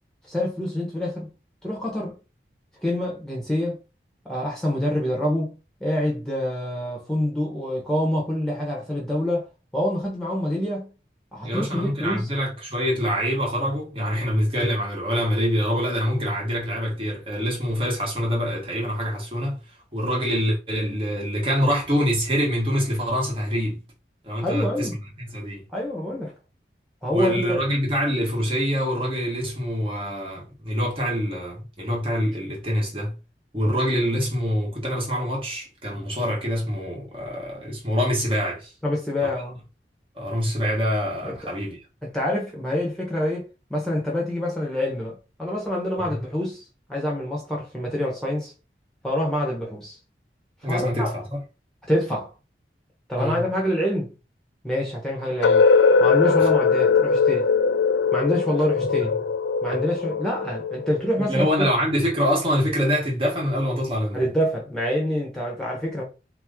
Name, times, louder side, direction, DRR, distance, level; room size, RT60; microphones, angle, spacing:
voice 1, 0.3-1.3 1.6-2.1 2.8-3.8 4.2-5.5 5.8-9.4 9.7-10.9 11.3-12.3 24.4-25.0 25.7-26.3 27.0-27.6 38.8-39.6 41.2-41.5 42.0-46.6 46.9-48.5 49.0-50.0 50.6-51.1 51.9-52.3 53.1-54.1 54.6-55.6 56.0-57.5 58.1-59.1 59.6-61.5 64.1-66.0, left 1 dB, 5° left, 1.2 m, -26 dB
voice 2, 11.4-19.6 19.9-23.8 24.2-25.6 27.1-33.1 33.5-38.7 39.2-39.3 40.2-41.8 46.1-46.2 50.6-51.4 53.2-53.5 59.0-59.1 61.3-64.3, equal, 30° right, 1.4 m, -25 dB
sound 1, 55.4-61.3, left 5 dB, 80° left, 0.4 m, -20 dB
3.9 x 3.1 x 3.7 m
head